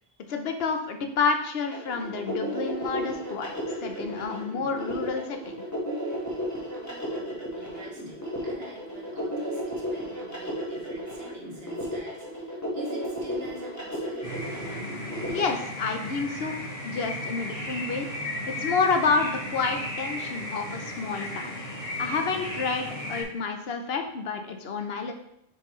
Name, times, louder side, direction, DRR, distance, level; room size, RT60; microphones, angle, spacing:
voice 1, 0.3-5.6 15.3-16.6 16.8-18.1 18.5-21.6 22.0-25.1, left 4 dB, 75° left, 6 dB, 1.0 m, -29 dB
sound 1, 1.7-15.4, equal, 15° left, 1.3 m, -33 dB
voice 2, 6.8-14.5, right 1 dB, 80° right, -1 dB, 1.6 m, -48 dB
sound 2, 14.2-23.2, left 1 dB, 35° left, 1.4 m, -35 dB
7.0 x 4.7 x 3.1 m, 0.80 s
omnidirectional pair, 1.0 m